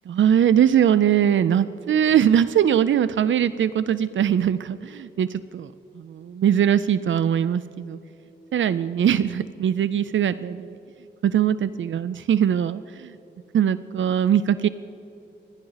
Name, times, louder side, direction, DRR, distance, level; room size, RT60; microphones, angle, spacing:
voice 1, 0.1-5.7 6.0-8.0 8.5-10.5 11.2-13.1 13.5-14.7, right 9 dB, 85° right, 14 dB, 0.4 m, -21 dB
28.0 x 11.0 x 4.0 m, 3.0 s
wide cardioid pair, 95°, 19 cm